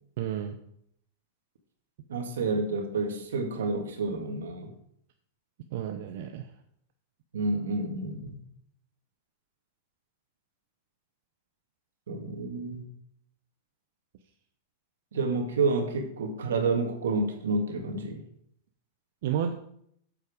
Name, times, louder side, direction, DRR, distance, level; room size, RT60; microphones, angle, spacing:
voice 1, 0.2-0.6 5.7-6.5 19.2-19.5, right 9 dB, 65° right, 5 dB, 0.8 m, -31 dB
voice 2, 2.1-4.7 7.3-8.4 12.1-12.8 15.1-18.2, right 3 dB, 85° right, 4 dB, 2.0 m, -29 dB
8.4 x 7.4 x 5.0 m, 0.70 s
hypercardioid pair, 120°, 0 cm